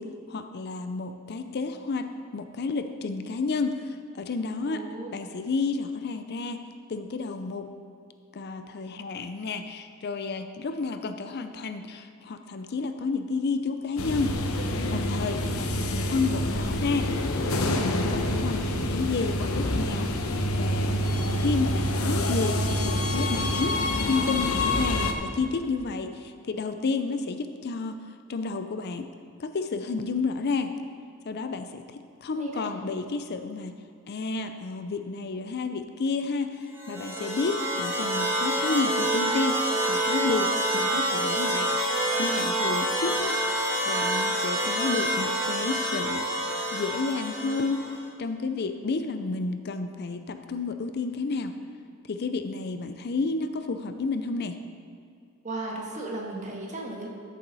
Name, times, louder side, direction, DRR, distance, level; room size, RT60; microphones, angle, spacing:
voice 1, 0.0-6.6 6.9-7.7 8.3-14.4 14.9-17.2 17.4-20.3 20.6-21.1 21.4-28.0 28.3-29.1 29.4-30.8 31.2-41.7 42.2-43.4 43.9-46.3 46.7-47.8 48.2-51.6 52.0-54.6, left 4 dB, 50° left, 9 dB, 0.5 m, -31 dB
voice 2, 4.7-5.1 32.4-32.7 55.4-57.1, right 2 dB, 35° right, -1 dB, 1.6 m, -35 dB
sound 1, 14.0-25.1, left 1 dB, 80° left, 0.8 m, -27 dB
sound 2, 36.7-48.0, right 1 dB, 10° right, 1.9 m, -27 dB
13.5 x 7.0 x 4.0 m, 2.4 s
head